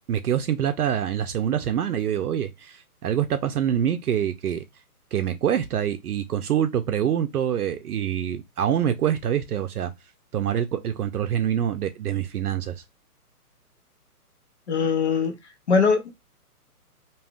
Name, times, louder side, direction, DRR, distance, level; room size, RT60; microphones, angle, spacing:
voice 1, 0.1-4.6 5.1-9.9 10.3-12.7, right 9 dB, 75° right, 0.6 m, -25 dB
voice 2, 14.7-15.3 15.7-16.1, left 5 dB, 45° left, 0.7 m, -21 dB
3.4 x 2.4 x 2.3 m
hypercardioid pair, 165°, 46 cm